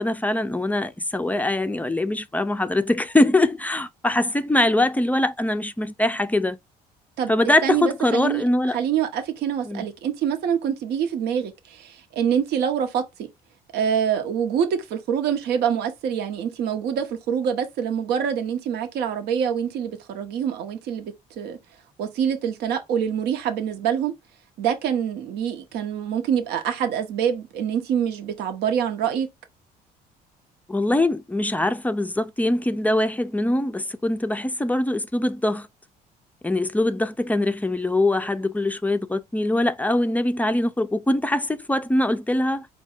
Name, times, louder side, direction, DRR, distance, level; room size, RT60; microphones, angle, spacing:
voice 1, 0.0-6.6 7.3-8.8 9.7-9.8 30.7-35.7 36.4-42.7, left 1 dB, 10° left, 0.4 m, -23 dB
voice 2, 7.6-8.4 8.7-13.0 13.7-21.6 22.0-24.1 24.6-29.3, right 8 dB, 75° right, 0.8 m, -25 dB
4.6 x 2.2 x 4.3 m
cardioid pair, 110°, 17 cm